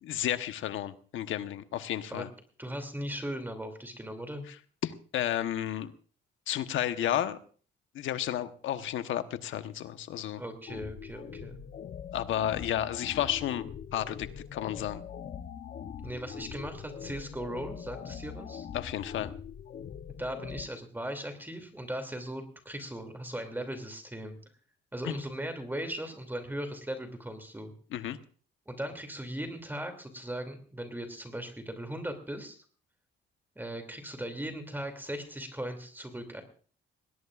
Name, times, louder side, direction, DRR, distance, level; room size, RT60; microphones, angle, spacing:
voice 1, 0.0-2.3 4.5-4.6 4.8-5.9 6.5-7.4 7.9-10.4 12.1-13.6 13.9-15.0 18.7-19.3 25.0-25.2 27.9-28.2, left 11 dB, 80° left, 10 dB, 1.1 m, -32 dB
voice 2, 2.6-4.4 10.4-11.6 16.0-18.7 20.2-24.4 24.9-27.7 28.7-32.6 33.6-36.4, right 1 dB, 10° right, 6 dB, 2.8 m, -38 dB
sound 1, 10.7-20.6, left 8 dB, 50° left, 0.9 m, -42 dB
20.5 x 18.0 x 2.5 m, 0.43 s
cardioid pair, 90°, 20 cm